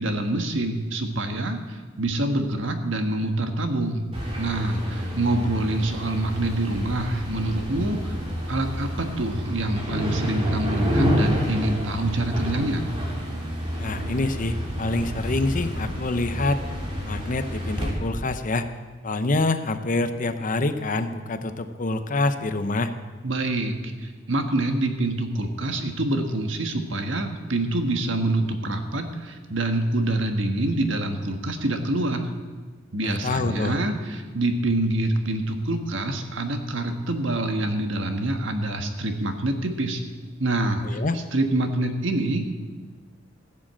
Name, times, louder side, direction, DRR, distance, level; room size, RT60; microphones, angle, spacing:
voice 1, 0.0-4.0 4.4-8.1 8.5-12.9 23.2-32.3 32.9-40.0 40.4-41.0 41.3-42.6, right 2 dB, 75° right, 5 dB, 1.4 m, -26 dB
sound 1, 4.1-17.9, equal, 30° right, 3.2 m, -29 dB
voice 2, 13.8-16.6 17.0-18.7 19.0-22.9 33.0-33.8 40.8-41.2, left 2 dB, 45° left, 9 dB, 0.8 m, -26 dB
15.5 x 7.5 x 7.5 m, 1.4 s
head